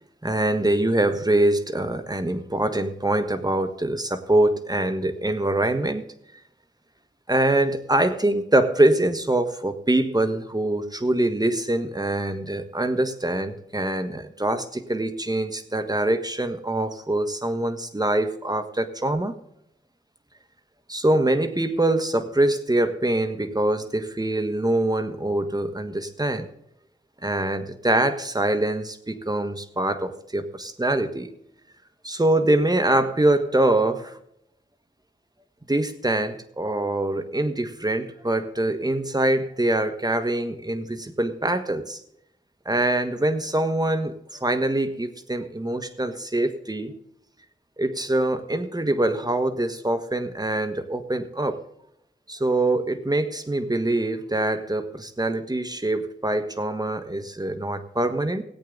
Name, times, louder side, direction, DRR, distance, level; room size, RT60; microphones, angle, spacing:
voice 1, 0.2-6.0 7.3-19.3 20.9-26.5 27.2-31.3 32.0-34.2 35.7-42.0 42.6-46.9 47.8-51.6 52.3-58.4, right 1 dB, 20° right, 8 dB, 1.4 m, -24 dB
18.0 x 8.6 x 3.9 m, 0.75 s
wide cardioid pair, 65°, 19 cm